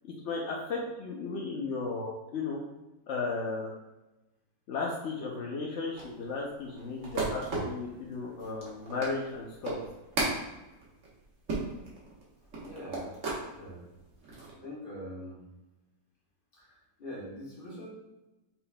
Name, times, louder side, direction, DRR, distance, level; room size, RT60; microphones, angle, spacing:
voice 1, 0.0-2.6 3.1-3.7 4.7-9.8, left 4 dB, 65° left, -3 dB, 0.7 m, -35 dB
sound 1, 5.9-13.5 13.9-14.5, right 3 dB, 50° right, 1.4 m, -36 dB
voice 2, 12.6-13.2 13.5-13.8 14.5-15.4 16.5-17.9, equal, 30° left, -5 dB, 1.5 m, -43 dB
5.7 x 4.0 x 2.2 m, 1.0 s
omnidirectional pair, 1.9 m